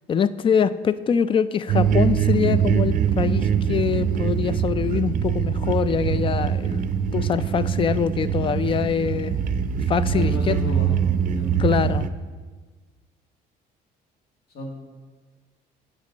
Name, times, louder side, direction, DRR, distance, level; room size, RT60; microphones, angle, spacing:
voice 1, 0.1-6.9 7.1-9.4 9.9-10.6 11.6-12.1, left 7 dB, 30° left, 16 dB, 0.3 m, -24 dB
sound 1, 1.7-12.1, right 8 dB, 50° right, 0.5 m, -23 dB
voice 2, 10.1-10.9 11.3-11.6 14.5-14.7, equal, 65° left, 0 dB, 2.2 m, -33 dB
10.5 x 7.4 x 4.0 m, 1.4 s
cardioid pair, 110°, 17 cm